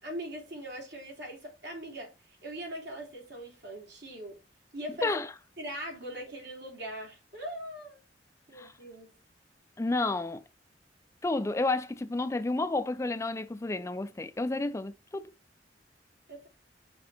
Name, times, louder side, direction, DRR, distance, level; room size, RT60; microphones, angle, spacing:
voice 1, 0.0-2.1 2.4-4.3 4.7-5.2 5.6-8.0 8.5-9.1 16.3-16.5, equal, 75° right, 3.6 m, -41 dB
voice 2, 5.0-5.3 8.5-8.7 9.8-10.4 11.2-15.3, left 2 dB, 15° left, 0.3 m, -31 dB
6.1 x 4.7 x 3.9 m
head